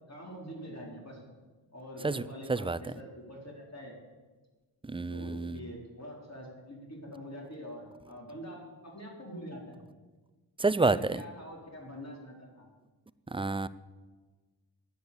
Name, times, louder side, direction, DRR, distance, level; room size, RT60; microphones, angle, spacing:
voice 1, 0.1-1.2 1.7-4.0 5.1-9.8 10.8-12.7, equal, 30° left, -1 dB, 3.9 m, -45 dB
voice 2, 4.9-5.6 10.6-11.2 13.3-13.7, right 3 dB, 10° right, 16 dB, 0.4 m, -28 dB
9.6 x 9.2 x 8.1 m, 1.3 s
cardioid pair, 55°, 50 cm